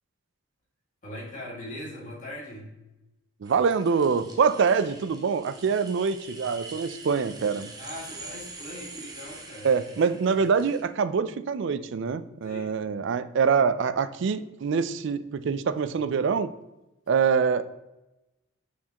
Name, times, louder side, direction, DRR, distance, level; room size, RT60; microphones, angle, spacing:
voice 1, 1.0-2.7 7.8-9.7 10.3-10.5 12.4-12.8, left 1 dB, 35° left, -5 dB, 2.3 m, -40 dB
sound 1, 3.4-10.8, right 3 dB, 20° right, 0.7 m, -45 dB
voice 2, 3.4-7.7 9.6-16.5 17.1-17.7, right 5 dB, 55° right, 14 dB, 0.3 m, -25 dB
6.4 x 5.9 x 2.9 m, 0.98 s
head